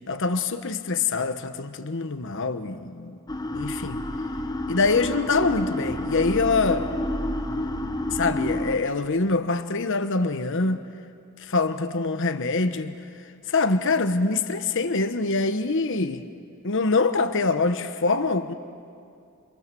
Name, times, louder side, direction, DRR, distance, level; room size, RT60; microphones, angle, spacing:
voice 1, 0.1-3.1 3.5-4.0 4.7-6.9 8.1-10.8 11.4-13.0 13.5-16.3 16.6-18.5, left 3 dB, 65° left, 1.1 m, -24 dB
sound 1, 3.3-8.8, left 1 dB, 20° left, 1.2 m, -29 dB
29.5 x 27.5 x 7.0 m
head